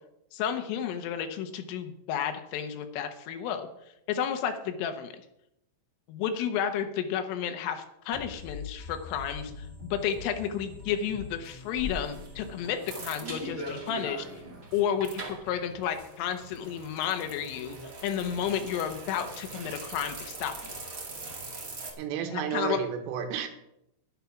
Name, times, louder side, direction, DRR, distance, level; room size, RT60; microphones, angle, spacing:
voice 1, 0.3-3.7 4.1-5.1 6.1-14.3 14.7-17.8 18.0-20.7 22.3-22.8, left 8 dB, 85° left, 7 dB, 3.7 m, -32 dB
sound 1, 8.1-13.8, left 4 dB, 45° left, 1.0 m, -45 dB
sound 2, 11.4-21.9, right 2 dB, 55° right, 0.9 m, -41 dB
voice 2, 22.0-23.5, right 8 dB, 90° right, 6 dB, 4.0 m, -31 dB
11.0 x 11.0 x 5.8 m, 0.80 s
omnidirectional pair, 5.7 m